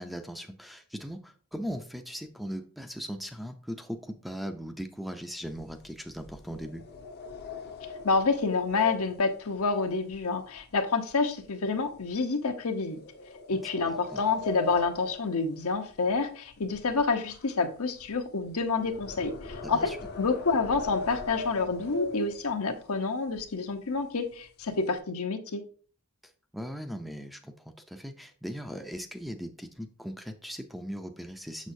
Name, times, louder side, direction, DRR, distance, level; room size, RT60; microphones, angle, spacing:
voice 1, 0.0-6.8 13.5-14.2 19.6-20.0 26.5-31.7, equal, ahead, 6 dB, 0.5 m, -39 dB
sound 1, 5.4-10.8 11.1-11.4 11.9-12.1 12.9-16.2 16.5-22.7 23.3-23.4 23.7-24.0 24.3-25.0, left 3 dB, 50° left, 0.7 m, -41 dB
voice 2, 8.0-13.0 13.5-19.9 20.2-25.6, left 4 dB, 80° left, 6 dB, 0.8 m, -28 dB
6.5 x 6.3 x 2.6 m, 0.43 s
head